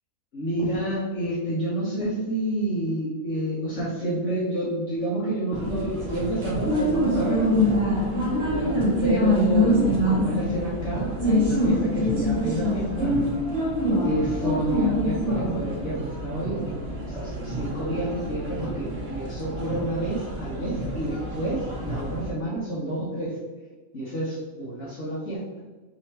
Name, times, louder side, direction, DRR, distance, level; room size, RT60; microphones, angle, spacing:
voice 1, 0.3-7.8 8.4-8.7 9.0-13.1 14.0-23.4 23.9-25.4, right 1 dB, 55° left, -7 dB, 1.4 m, -29 dB
sound 1, 5.5-22.3, equal, 50° right, 1.3 m, -25 dB
3.7 x 3.2 x 4.4 m, 1.3 s
omnidirectional pair, 1.5 m